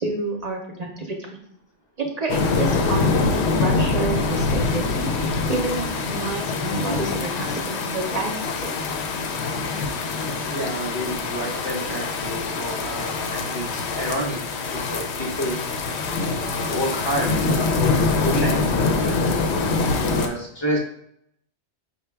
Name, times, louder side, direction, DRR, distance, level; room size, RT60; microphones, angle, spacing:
voice 1, 0.0-1.4 2.0-8.7, right 3 dB, 50° right, 1 dB, 0.5 m, -29 dB
sound 1, 2.3-20.3, left 3 dB, 70° left, 0.8 m, -24 dB
voice 2, 10.5-14.4 14.7-15.7 16.3-18.7 19.0-19.2 20.0-20.8, equal, 30° left, 0 dB, 0.6 m, -29 dB
5.3 x 2.1 x 3.3 m, 0.71 s
omnidirectional pair, 1.2 m